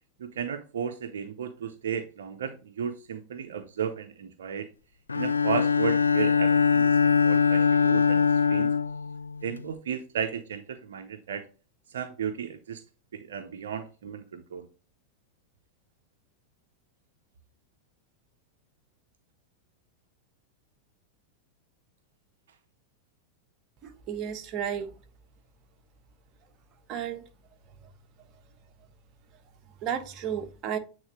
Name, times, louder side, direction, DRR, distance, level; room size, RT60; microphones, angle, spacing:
voice 1, 0.2-4.7 5.1-8.7 9.4-11.5 11.9-12.8 13.1-14.7, right 7 dB, 70° right, 0.8 m, -34 dB
Bowed string instrument, 5.1-9.7, left 6 dB, 90° left, 0.4 m, -23 dB
voice 2, 23.8-24.9 26.9-27.2 29.8-30.8, right 8 dB, 40° right, 1.3 m, -33 dB
8.7 x 3.9 x 3.2 m
hypercardioid pair, 95°, 0 cm